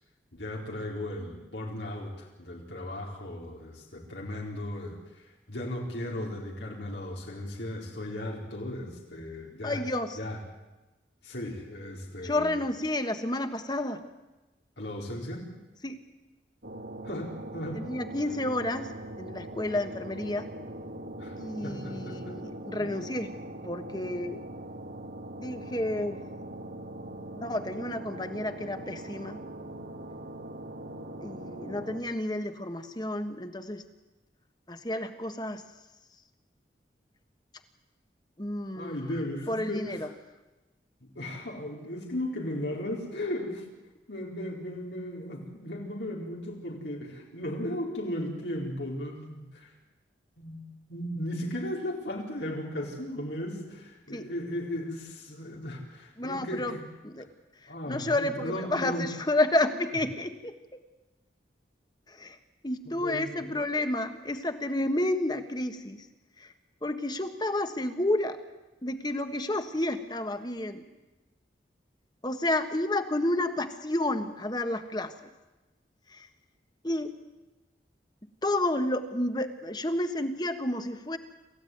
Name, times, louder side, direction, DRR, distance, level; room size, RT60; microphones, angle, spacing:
voice 1, 0.3-9.8 10.1-10.4 11.2-12.5 14.8-15.5 17.0-17.8 21.2-21.4 21.6-22.3 22.8-22.9 38.8-40.1 41.0-43.7 44.1-49.7 50.4-56.8 57.7-59.1 62.9-63.6, left 1 dB, 85° left, -1 dB, 4.3 m, -36 dB
voice 2, 9.6-10.2 12.2-14.0 15.8-16.0 17.7-18.9 19.2-20.5 21.4-23.3 23.6-24.4 25.4-26.2 27.4-29.4 31.2-33.9 34.7-35.6 38.4-40.1 54.1-54.3 56.2-56.7 57.0-57.3 57.6-60.8 62.1-62.4 62.6-66.1 66.4-66.5 66.8-68.4 68.8-70.9 72.2-75.1 76.1-76.3 76.8-77.1 78.4-81.2, left 1 dB, 25° left, 8 dB, 1.5 m, -30 dB
sound 1, 16.6-32.0, right 1 dB, 80° right, 2.7 m, -41 dB
27.5 x 15.0 x 9.4 m, 1.1 s
head